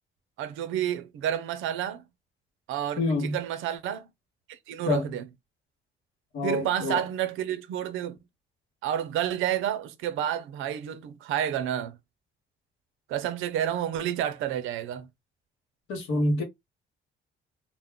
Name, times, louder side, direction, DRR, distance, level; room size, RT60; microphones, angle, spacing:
voice 1, 0.4-2.0 2.7-4.1 4.5-5.3 6.4-8.2 8.8-12.0 13.1-15.1, right 10 dB, 90° right, 0.5 m, -30 dB
voice 2, 3.0-3.4 4.9-5.1 6.3-7.0 15.9-16.4, left 2 dB, 85° left, 1.1 m, -27 dB
2.2 x 2.1 x 3.6 m
cardioid pair, 90°, 20 cm